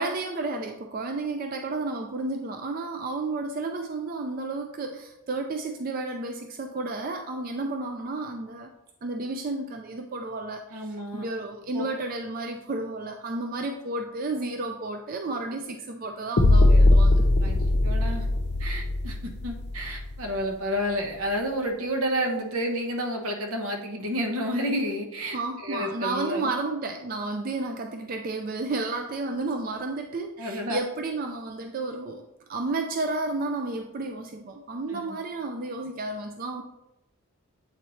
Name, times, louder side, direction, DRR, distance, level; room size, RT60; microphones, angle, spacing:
voice 1, 0.0-8.7 9.0-17.2 25.3-32.2 32.5-36.6, right 2 dB, 40° right, 4 dB, 0.3 m, -32 dB
voice 2, 10.7-11.3 11.7-11.8 17.4-18.3 18.6-25.4 25.6-26.5 30.4-30.9 34.9-35.2, equal, 75° right, 3 dB, 1.0 m, -30 dB
sound 1, 16.4-20.4, left 2 dB, 50° left, 0.5 m, -20 dB
7.9 x 4.2 x 3.1 m, 0.90 s
head